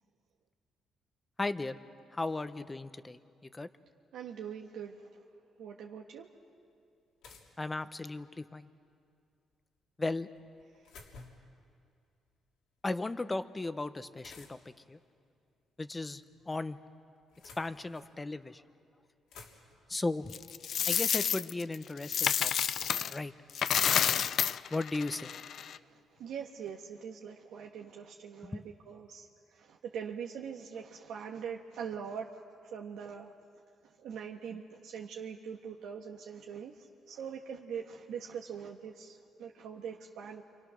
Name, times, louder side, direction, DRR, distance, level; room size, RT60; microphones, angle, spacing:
voice 1, 1.4-1.8 2.1-3.7 7.6-8.7 10.0-10.3 12.8-15.0 15.8-16.8 17.6-18.6 19.9-20.3 20.9-22.7 23.1-23.3 24.7-25.3 28.5-28.6, left 2 dB, 20° left, 11 dB, 1.0 m, -36 dB
voice 2, 4.1-5.1 5.6-6.3 25.8-25.9 26.2-32.4 32.7-33.3 34.0-40.4, right 7 dB, 80° right, 0 dB, 1.5 m, -42 dB
sound 1, 6.2-6.3 7.2-8.3 10.4-11.6 14.2-14.8 16.0-16.6 17.2-18.1 18.8-18.9 19.0-19.9 21.1-21.2 22.8-24.3, left 4 dB, 85° left, 3.3 m, -55 dB
Coin (dropping), 20.3-23.2 23.5-25.8, left 8 dB, 65° left, 0.6 m, -30 dB
28.0 x 25.5 x 6.5 m, 2.4 s
cardioid pair, 90°, 0 cm